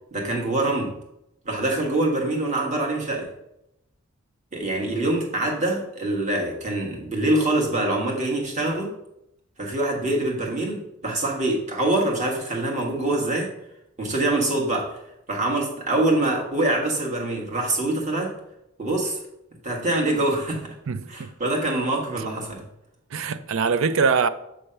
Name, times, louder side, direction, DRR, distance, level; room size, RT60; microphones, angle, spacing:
voice 1, 0.1-0.9 1.4-3.3 4.5-8.9 9.6-13.5 14.0-15.0 15.3-18.3 18.8-19.2 19.6-20.7 21.1-22.6, right 2 dB, 35° right, 1.5 m, -24 dB
voice 2, 20.9-21.3 23.1-24.3, right 5 dB, 70° right, 0.4 m, -23 dB
7.6 x 3.3 x 5.6 m
head